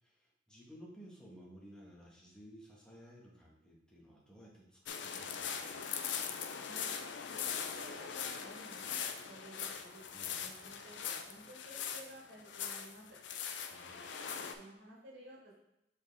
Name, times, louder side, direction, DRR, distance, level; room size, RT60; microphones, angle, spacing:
voice 1, 0.0-6.0 10.1-10.4 13.7-14.0, equal, 5° left, -4 dB, 1.5 m, -56 dB
sound 1, 4.9-14.5, left 7 dB, 90° left, 0.6 m, -41 dB
voice 2, 6.6-6.9 7.3-10.0 10.4-13.2 13.9-15.6, right 1 dB, 90° right, -4 dB, 2.2 m, -55 dB
6.5 x 4.6 x 3.5 m, 0.86 s
head